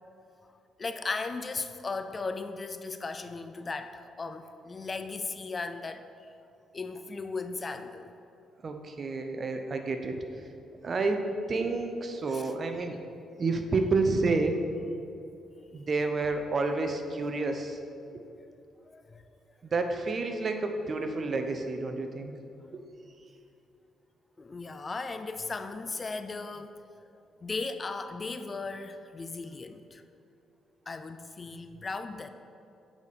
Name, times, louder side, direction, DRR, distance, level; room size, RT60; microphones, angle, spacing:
voice 1, 0.8-6.0 6.7-8.1 12.3-12.5 18.9-19.3 24.4-26.8 27.4-30.0 30.9-32.3, left 3 dB, 30° left, 9 dB, 0.4 m, -37 dB
voice 2, 8.6-10.5 10.8-13.0 13.4-14.6 15.7-17.8 19.6-22.3 22.7-22.8 23.2-23.3, right 3 dB, 40° right, 5 dB, 0.7 m, -30 dB
8.1 x 4.1 x 5.1 m, 2.7 s
cardioid pair, 90°, 0 cm